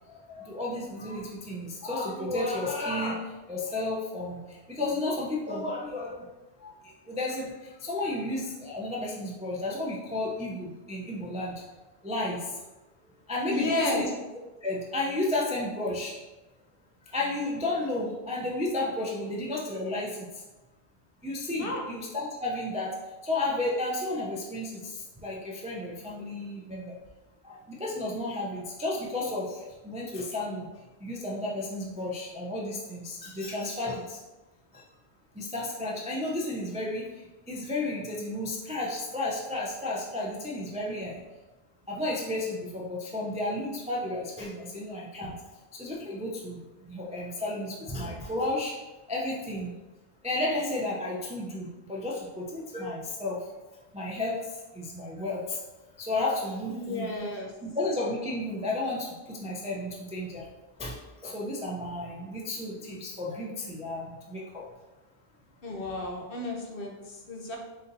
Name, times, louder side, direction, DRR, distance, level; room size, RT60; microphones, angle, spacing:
voice 1, 0.1-6.3 6.6-6.7 7.1-11.6 12.0-12.5 13.3-14.1 14.6-16.1 17.1-20.3 21.2-22.9 23.2-26.9 27.4-30.7 31.0-34.2 34.7-34.8 35.3-41.2 41.9-45.3 45.8-48.7 49.1-49.7 50.2-53.4 53.9-55.6 56.0-57.1 57.6-60.4 60.8-61.0 61.2-64.6, left 2 dB, 10° right, -4 dB, 0.3 m, -32 dB
voice 2, 13.5-14.0 21.6-21.8 56.7-57.5 65.6-67.6, left 1 dB, 55° left, 0 dB, 0.9 m, -32 dB
4.1 x 2.6 x 4.0 m, 1.1 s
omnidirectional pair, 1.2 m